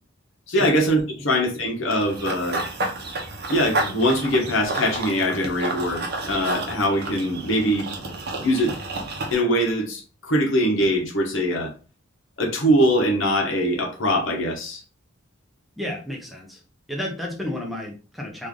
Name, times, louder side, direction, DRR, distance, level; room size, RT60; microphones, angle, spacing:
voice 1, 0.5-2.6 3.5-8.1 8.4-8.8 9.3-11.7 12.4-14.8, equal, 70° left, 1.0 m, -22 dB
Run / Bird vocalization bird call bird song, 1.9-9.3, right 2 dB, 50° right, 0.7 m, -30 dB
voice 2, 15.8-16.6 16.9-18.5, left 1 dB, ahead, 0.6 m, -31 dB
3.2 x 2.5 x 3.7 m
head